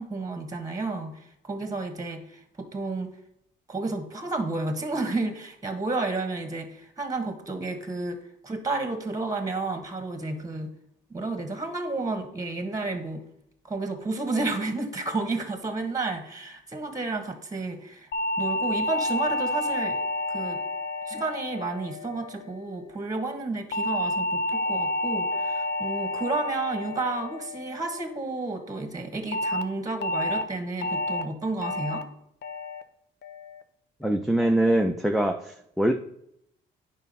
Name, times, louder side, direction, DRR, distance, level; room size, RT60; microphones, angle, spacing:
voice 1, 0.0-3.1 3.7-8.2 8.4-10.7 11.1-13.2 13.6-18.1 18.4-20.0 20.3-20.6 21.0-32.1, right 3 dB, 15° right, 7 dB, 1.5 m, -31 dB
sound 1, 18.1-22.6 23.7-28.2 29.3-29.6 30.0-30.4 30.8-31.2 31.6-32.0 32.4-32.8 33.2-33.6, left 1 dB, 60° left, 0.8 m, -30 dB
voice 2, 34.0-35.9, right 1 dB, ahead, 3 dB, 0.6 m, -23 dB
8.9 x 5.5 x 5.5 m, 0.75 s
cardioid pair, 90°, 20 cm